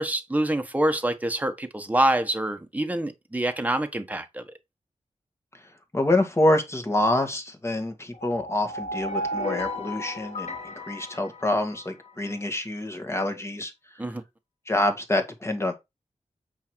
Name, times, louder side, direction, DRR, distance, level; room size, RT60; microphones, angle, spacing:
voice 1, 0.0-4.4 14.0-14.2, right 1 dB, 15° right, 1.3 m, -26 dB
voice 2, 5.9-13.7 14.7-15.7, left 1 dB, 20° left, 1.9 m, -26 dB
sound 1, 8.1-12.1, left 1 dB, 70° left, 3.0 m, -34 dB
8.4 x 4.9 x 4.6 m
wide cardioid pair, 115°, 12 cm